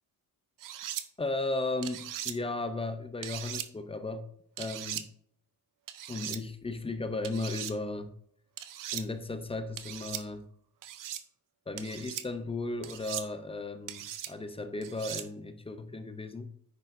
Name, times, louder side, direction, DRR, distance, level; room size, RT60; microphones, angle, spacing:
sound 1, 0.6-1.0 1.8-2.3 3.2-3.7 4.6-5.0 5.9-6.4 7.2-7.7 8.6-9.0 9.8-10.2 10.8-11.2 11.8-12.2 12.8-13.3 13.9-14.3 14.8-15.3, right 11 dB, 60° right, 0.6 m, -39 dB
voice 1, 1.2-4.3 4.6-5.0 6.1-8.1 8.9-10.5 11.7-16.5, left 2 dB, 15° left, 0.4 m, -35 dB
10.0 x 6.6 x 2.5 m
cardioid pair, 155°, 38 cm